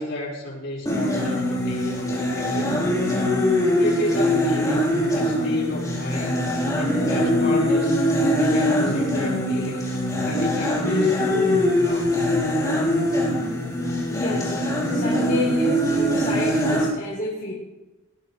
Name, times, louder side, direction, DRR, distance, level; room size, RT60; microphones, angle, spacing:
voice 1, 0.0-3.0 3.8-6.4 6.8-8.0 8.3-9.9 10.2-12.2, left 1 dB, 55° left, -4 dB, 5.9 m, -31 dB
sound 1, 0.9-16.9, left 1 dB, 15° left, 4.5 m, -22 dB
voice 2, 13.7-14.6 14.9-17.5, left 1 dB, 35° left, -6 dB, 2.8 m, -31 dB
19.5 x 14.5 x 3.5 m, 1.1 s
head